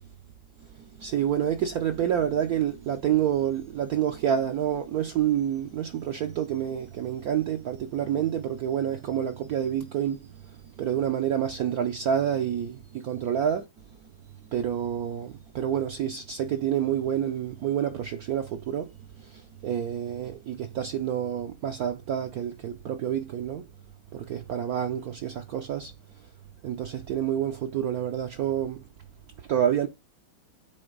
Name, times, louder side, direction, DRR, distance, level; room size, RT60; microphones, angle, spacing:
voice 1, 1.0-10.2 10.8-13.6 14.5-18.9 19.6-23.6 24.1-25.9 26.6-28.8 29.5-29.9, right 9 dB, 70° right, 0.9 m, -28 dB
7.9 x 3.8 x 3.9 m
omnidirectional pair, 2.2 m